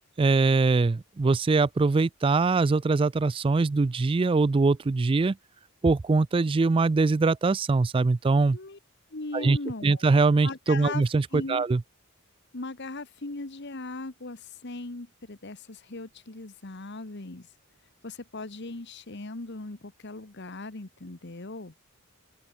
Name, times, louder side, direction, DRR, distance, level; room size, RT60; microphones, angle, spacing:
voice 1, 0.2-5.4 5.8-8.6 9.3-9.6 9.8-11.8, right 3 dB, 25° right, 0.3 m, -22 dB
voice 2, 9.1-10.1 10.4-11.0 11.3-11.6 12.5-17.5 18.0-21.7, left 2 dB, 55° left, 1.4 m, -38 dB
open air
head